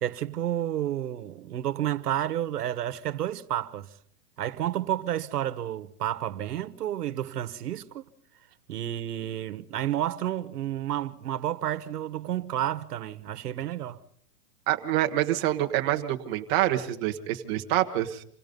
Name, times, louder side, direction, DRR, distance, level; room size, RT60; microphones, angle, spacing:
voice 1, 0.0-3.9 4.4-8.1 8.7-14.0, right 12 dB, 90° right, 1.5 m, -31 dB
voice 2, 14.7-18.2, right 14 dB, 25° right, 1.3 m, -26 dB
27.5 x 18.5 x 5.4 m
supercardioid pair, 170°, 45 cm